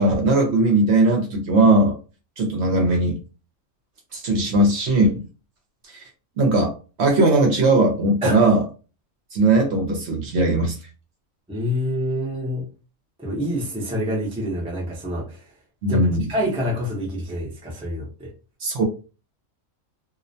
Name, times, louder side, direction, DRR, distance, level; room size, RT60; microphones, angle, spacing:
voice 1, 0.0-1.9 2.4-3.2 4.1-5.2 5.9-6.0 6.4-6.7 7.0-8.6 9.3-10.8 15.8-16.3 18.6-18.8, right 2 dB, 65° right, 2 dB, 0.8 m, -19 dB
voice 2, 11.5-12.6 13.2-15.4 15.9-18.3, equal, 5° right, -3 dB, 0.4 m, -27 dB
2.4 x 2.1 x 2.6 m, 0.34 s
omnidirectional pair, 1.4 m